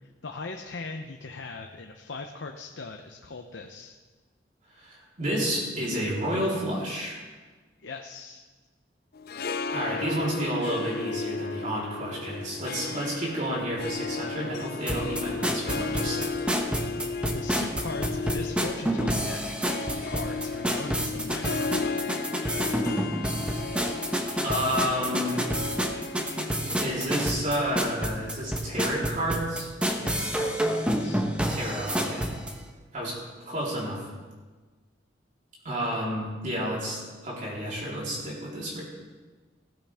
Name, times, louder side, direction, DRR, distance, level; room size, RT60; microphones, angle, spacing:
voice 1, 0.0-3.9 7.8-8.4 17.3-19.6 19.9-22.1 30.0-31.2, left 3 dB, 85° left, 4 dB, 0.8 m, -39 dB
voice 2, 4.7-7.2 9.7-16.3 24.4-25.4 26.8-29.7 31.5-32.3 32.9-33.2 33.4-34.1 35.6-38.8, equal, 45° right, -6 dB, 4.0 m, -30 dB
Harp, 9.1-28.5, left 4 dB, 55° left, 0.5 m, -35 dB
sound 1, 14.9-32.5, equal, 5° right, 1.1 m, -29 dB
16.0 x 14.5 x 3.6 m, 1.3 s
head